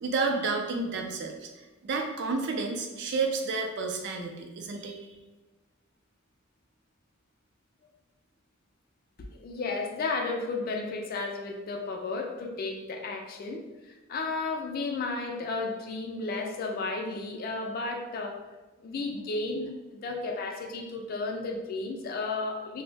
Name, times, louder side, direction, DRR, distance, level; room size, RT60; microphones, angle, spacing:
voice 1, 0.0-1.5 1.8-5.1, right 4 dB, 60° right, 3 dB, 0.4 m, -30 dB
voice 2, 9.3-13.6 14.1-18.4 18.8-22.8, left 3 dB, 45° left, 3 dB, 0.4 m, -33 dB
2.6 x 2.0 x 3.2 m, 1.2 s
head